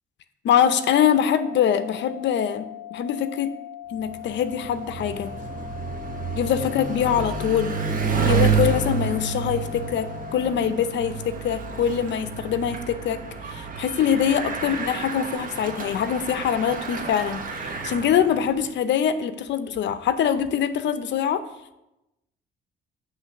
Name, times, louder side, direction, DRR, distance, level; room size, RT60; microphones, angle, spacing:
voice 1, 0.4-3.5 3.9-5.3 6.3-7.8 8.2-13.2 13.5-21.4, left 8 dB, 65° left, 11 dB, 0.6 m, -24 dB
sound 1, 0.5-10.5, left 12 dB, 15° right, 2.5 m, -40 dB
Bicycle, 4.0-18.6, right 5 dB, 45° right, 1.1 m, -29 dB
8.1 x 3.2 x 6.0 m, 0.93 s
cardioid pair, 90°, 20 cm